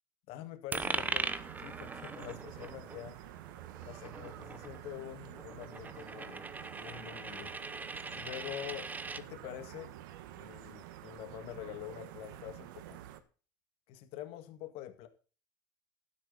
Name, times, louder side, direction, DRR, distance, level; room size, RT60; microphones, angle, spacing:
voice 1, 0.3-3.2 3.8-6.4 6.8-7.6 8.1-9.9 10.3-13.0 13.9-15.1, left 12 dB, 60° left, 1.9 m, -46 dB
Coin (dropping), 0.7-9.2, right 3 dB, 15° right, 0.9 m, -40 dB
sound 1, 0.8-13.2, right 13 dB, 75° right, 1.5 m, -49 dB
12.0 x 10.0 x 4.1 m
hypercardioid pair, 100°, 11 cm